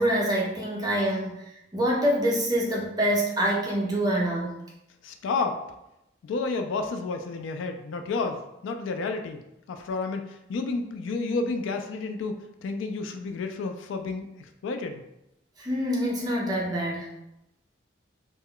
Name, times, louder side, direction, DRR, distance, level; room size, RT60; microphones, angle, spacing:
voice 1, 0.0-1.4 1.7-4.6 15.6-17.1, equal, 20° right, -3 dB, 0.5 m, -25 dB
voice 2, 5.0-5.6 6.2-15.0, left 3 dB, 80° left, 6 dB, 0.3 m, -31 dB
2.2 x 2.1 x 3.6 m, 0.86 s
head